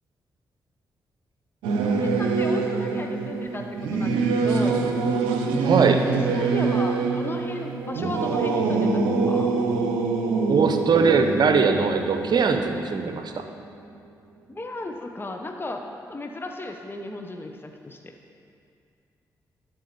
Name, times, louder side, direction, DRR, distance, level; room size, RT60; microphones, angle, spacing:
Singing / Musical instrument, 1.6-13.5, right 4 dB, 85° right, 0.7 m, -25 dB
voice 1, 1.8-4.8 6.0-9.0 9.3-9.5 14.5-15.8 16.1-18.0, left 2 dB, 25° left, 3 dB, 0.9 m, -35 dB
voice 2, 5.6-6.0 10.5-13.4, right 5 dB, 60° right, 6 dB, 0.8 m, -21 dB
11.5 x 4.6 x 6.8 m, 2.4 s
hypercardioid pair, 40°, 8 cm